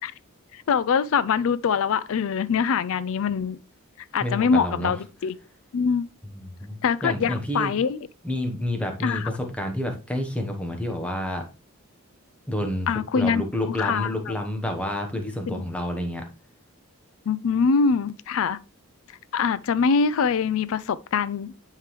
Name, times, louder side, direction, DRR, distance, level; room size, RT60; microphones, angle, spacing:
voice 1, 0.5-3.6 4.1-5.3 5.7-6.1 6.8-8.1 9.0-9.3 12.9-14.3 15.5-15.6 17.3-18.6 19.3-21.5, left 5 dB, 60° left, 0.4 m, -24 dB
voice 2, 4.2-4.9 6.3-7.7 8.2-11.4 12.5-12.9 13.1-16.2, left 1 dB, 5° left, 1.1 m, -29 dB
9.6 x 3.8 x 3.2 m
head